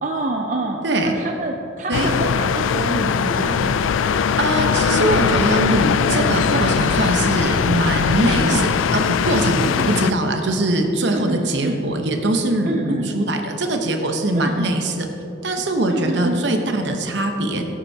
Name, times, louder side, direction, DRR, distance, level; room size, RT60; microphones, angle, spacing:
voice 1, 0.0-3.8 8.4-8.7 9.6-10.0 11.1-11.8 12.6-13.1 14.3-14.8 15.9-16.5, right 2 dB, 40° right, 2 dB, 0.5 m, -27 dB
sound 1, 1.9-10.1, left 6 dB, 90° left, 0.4 m, -20 dB
voice 2, 4.4-9.6 9.9-15.1 15.4-17.7, right 1 dB, 65° right, 4 dB, 0.9 m, -22 dB
15.5 x 8.8 x 2.8 m, 2.9 s
head